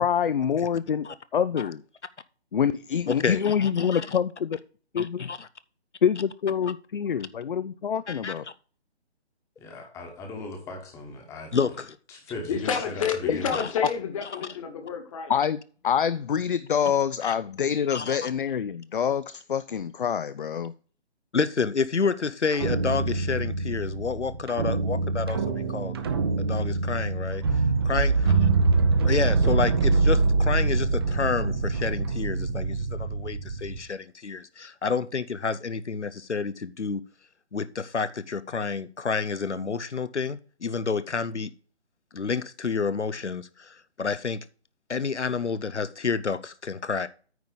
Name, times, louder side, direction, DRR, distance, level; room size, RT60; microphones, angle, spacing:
voice 1, 0.0-1.1 1.3-1.8 2.5-4.6 4.9-5.2 6.0-8.4 13.3-13.4 15.3-20.7, left 8 dB, 50° left, 0.5 m, -26 dB
voice 2, 3.2-4.0 5.0-5.5 8.1-8.3 11.5-12.0 13.5-13.6 17.2-17.3 17.9-18.3 21.3-26.0 26.4-28.5 29.0-37.0 37.5-41.5 42.1-44.4 44.9-47.1, left 5 dB, 90° left, 0.7 m, -29 dB
voice 3, 9.6-11.6 12.1-13.6, left 2 dB, 10° left, 1.2 m, -38 dB
voice 4, 12.5-15.3, left 7 dB, 30° left, 1.4 m, -29 dB
sound 1, 22.5-33.8, right 3 dB, 20° right, 0.7 m, -24 dB
9.3 x 3.9 x 6.5 m
figure-of-eight pair, 140°, 34 cm